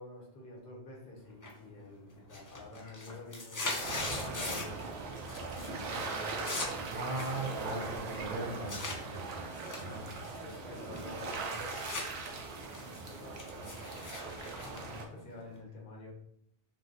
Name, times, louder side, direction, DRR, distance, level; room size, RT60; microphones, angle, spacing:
voice 1, 0.0-5.3 5.6-7.0 7.7-8.1 10.4-11.8 12.4-16.1, left 2 dB, 55° left, -2 dB, 1.0 m, -49 dB
sound 1, 1.4-1.8 2.2-4.9 5.2-5.7 5.9-9.0 9.5-12.1 12.4-15.6, left 2 dB, 30° left, 0.3 m, -41 dB
sound 2, 3.8-15.0, right 3 dB, 80° right, 0.8 m, -40 dB
voice 2, 6.9-9.2 9.8-10.2, right 2 dB, 50° right, -3 dB, 0.6 m, -39 dB
2.5 x 2.1 x 3.7 m, 0.71 s
omnidirectional pair, 1.0 m